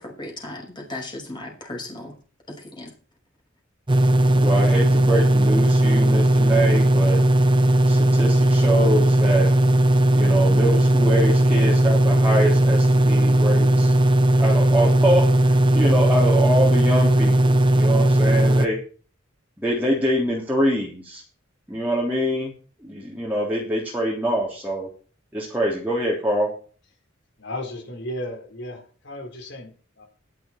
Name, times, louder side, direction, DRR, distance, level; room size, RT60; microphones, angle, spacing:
voice 1, 0.0-2.1 2.7-2.9, left 2 dB, 25° left, 5.7 m, -36 dB
sound 1, 3.9-18.7, right 1 dB, 25° right, 0.9 m, -17 dB
voice 2, 4.4-7.2 7.9-9.5 10.1-13.9 14.4-18.8 19.6-21.2 21.7-22.5 22.8-24.9 25.3-26.5, equal, 10° right, 3.3 m, -25 dB
voice 3, 27.4-30.1, left 1 dB, 60° left, 4.3 m, -35 dB
14.0 x 11.0 x 4.4 m
head